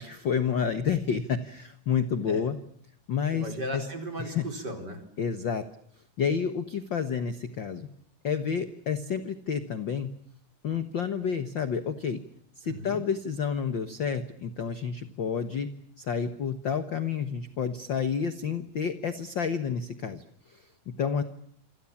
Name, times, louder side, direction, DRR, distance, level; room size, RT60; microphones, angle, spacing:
voice 1, 0.0-2.6 3.1-3.8 4.2-4.5 5.2-5.6 6.2-7.9 8.2-10.1 10.6-12.2 12.6-15.7 16.0-21.2, left 6 dB, 50° left, 10 dB, 1.4 m, -30 dB
voice 2, 3.3-5.0 12.6-13.0, equal, 30° right, 5 dB, 4.9 m, -36 dB
27.5 x 26.0 x 7.3 m, 0.62 s
omnidirectional pair, 3.8 m